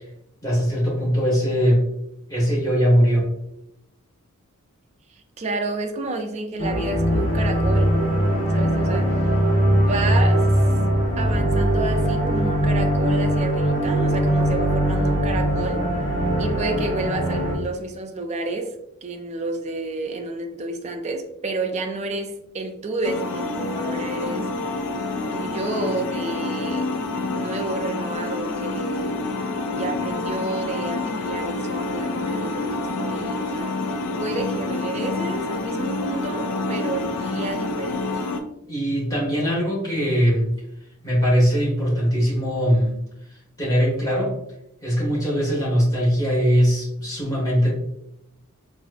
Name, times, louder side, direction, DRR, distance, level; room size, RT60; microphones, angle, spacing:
voice 1, 0.4-1.8 2.3-3.3 38.7-40.5 41.0-43.0 43.6-44.3 44.8-47.7, equal, 15° left, -5 dB, 1.4 m, -20 dB
voice 2, 5.1-7.9 8.5-9.3 9.7-10.6 11.2-15.9 16.4-24.5 25.3-26.9 27.3-29.2 29.8-38.2, right 2 dB, 30° right, 4 dB, 0.4 m, -30 dB
sound 1, 6.6-17.6, equal, 55° left, 1.1 m, -21 dB
sound 2, 23.0-38.4, left 2 dB, 85° left, 0.4 m, -27 dB
4.1 x 2.5 x 2.4 m, 0.78 s
head